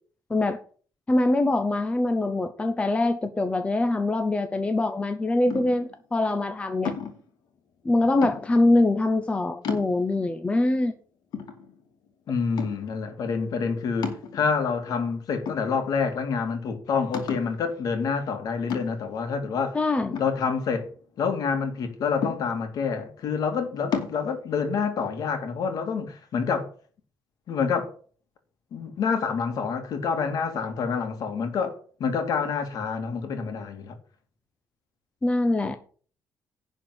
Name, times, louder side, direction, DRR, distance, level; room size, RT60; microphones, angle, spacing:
voice 1, 1.1-6.9 7.8-10.9 19.7-20.2 35.2-35.8, left 2 dB, 15° left, 0.7 m, -23 dB
sound 1, 5.5-5.9 6.8-7.3 8.2-8.7 9.2-9.3 9.6-10.3 10.8-10.9 11.3-12.1 12.6-13.0 14.0-14.8 15.5-16.1 16.4-16.5 17.1-17.6 18.7-19.2 20.1-21.0 22.2-22.8 23.9-24.2, left 6 dB, 80° left, 2.6 m, -33 dB
voice 2, 12.3-19.8 20.2-20.9 21.2-26.7 27.5-27.9 28.7-34.0, left 5 dB, 60° left, 2.4 m, -27 dB
11.0 x 4.5 x 7.7 m
cardioid pair, 145°, 7 cm